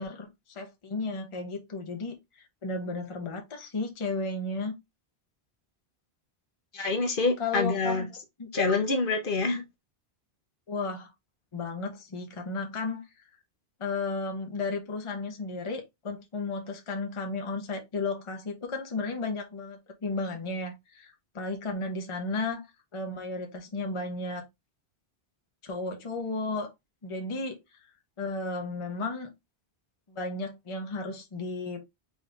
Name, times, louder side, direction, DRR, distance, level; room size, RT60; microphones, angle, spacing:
voice 1, 0.0-4.7 7.4-8.1 8.4-8.5 10.7-11.1 11.5-13.0 13.8-22.6 22.9-24.4 25.6-26.7 27.0-27.6 28.2-29.3 30.1-31.9, left 3 dB, 35° left, 0.7 m, -34 dB
voice 2, 6.7-8.1 8.5-9.6, left 3 dB, 55° left, 0.9 m, -26 dB
3.8 x 2.7 x 3.2 m
omnidirectional pair, 1.1 m